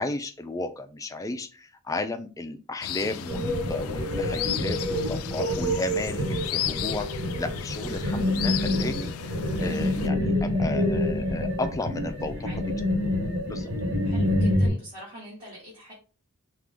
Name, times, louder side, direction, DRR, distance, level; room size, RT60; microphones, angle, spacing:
voice 1, 0.0-12.7 13.4-13.7, left 2 dB, 15° left, 6 dB, 0.4 m, -34 dB
sound 1, 2.8-10.1, left 10 dB, 90° left, 0.4 m, -34 dB
sound 2, 3.3-14.7, left 1 dB, 50° right, 1.7 m, -27 dB
voice 2, 14.0-15.9, equal, 25° right, -7 dB, 1.7 m, -43 dB
4.7 x 2.5 x 3.6 m, 0.34 s
head